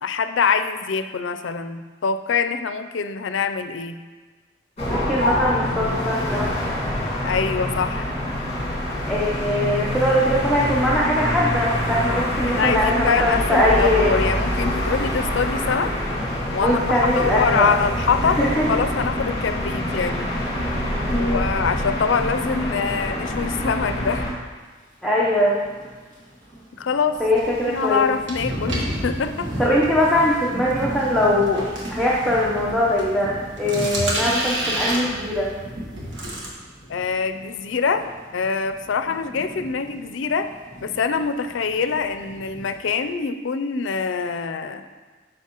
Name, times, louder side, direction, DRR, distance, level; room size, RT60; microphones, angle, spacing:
voice 1, 0.0-4.0 7.2-8.1 12.5-15.9 16.5-20.3 21.2-24.2 26.8-27.2 27.6-29.5 36.9-40.5 40.8-44.8, left 5 dB, 75° left, 9 dB, 0.4 m, -24 dB
sound 1, 4.8-24.3, left 1 dB, 35° left, 1.7 m, -25 dB
voice 2, 4.9-6.8 9.1-14.1 16.6-17.7 18.4-18.8 21.1-21.4 25.0-25.6 27.2-28.0 29.6-35.5, left 1 dB, ahead, -6 dB, 0.7 m, -21 dB
Thunder / Rain, 25.0-43.1, equal, 40° right, 1.9 m, -37 dB
sound 2, 27.1-36.5, right 1 dB, 75° right, 1.4 m, -31 dB
9.2 x 6.1 x 3.0 m, 1.4 s
head